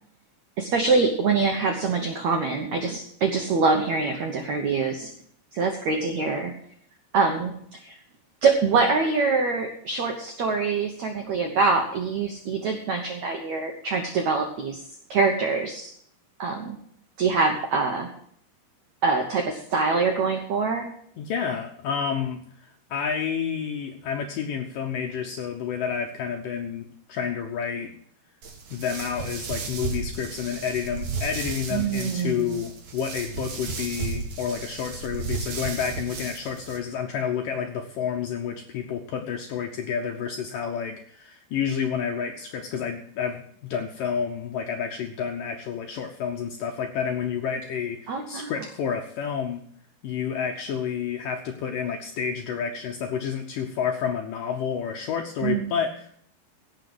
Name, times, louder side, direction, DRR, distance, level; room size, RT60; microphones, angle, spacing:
voice 1, 0.6-5.1 5.5-6.5 7.1-7.5 7.8-8.0 8.4-14.8 15.1-15.9 16.4-16.8 17.2-18.1 19.0-20.9 31.7-32.6 48.1-48.5 55.4-55.7, right 4 dB, 75° right, 3 dB, 1.6 m, -24 dB
voice 2, 21.2-27.9 28.7-49.6 50.0-56.2, left 7 dB, 75° left, 4 dB, 2.0 m, -30 dB
sound 1, 28.4-36.8, right 4 dB, 50° right, 2.6 m, -34 dB
17.0 x 5.8 x 7.8 m, 0.66 s
omnidirectional pair, 4.9 m